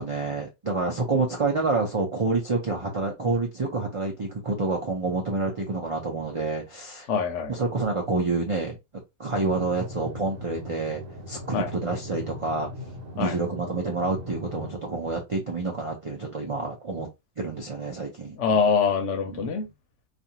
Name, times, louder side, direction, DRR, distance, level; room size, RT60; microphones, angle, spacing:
voice 1, 0.0-7.1 7.5-8.7 9.2-11.0 11.3-12.7 13.1-17.1 17.4-18.4 19.3-19.7, right 3 dB, 55° right, 0.3 m, -28 dB
voice 2, 7.1-7.5 11.5-11.7 13.2-13.4 18.4-19.7, left 6 dB, 65° left, 0.9 m, -24 dB
sound 1, 9.3-14.7, left 2 dB, 70° right, 1.1 m, -40 dB
2.5 x 2.4 x 2.7 m
omnidirectional pair, 1.4 m